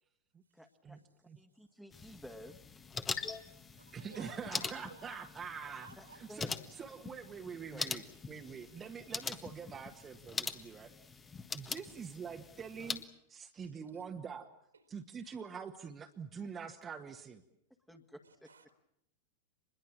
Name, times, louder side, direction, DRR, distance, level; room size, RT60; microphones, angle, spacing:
voice 1, 0.5-2.6 6.0-6.5 7.7-8.0 17.9-18.5, equal, ahead, 5 dB, 1.9 m, -53 dB
sound 1, 1.9-13.0, left 5 dB, 20° left, 1.6 m, -43 dB
voice 2, 3.4-6.2 8.6-8.8 11.8-11.9 13.6-14.0 14.7-14.8 18.2-18.7, right 4 dB, 75° right, 7 dB, 3.5 m, -59 dB
voice 3, 3.9-5.9 6.1-10.9 11.5-13.0 13.3-14.5 14.9-17.4, right 6 dB, 20° right, 4 dB, 1.6 m, -45 dB
26.0 x 21.5 x 7.4 m, 0.77 s
figure-of-eight pair, 90°, 0 cm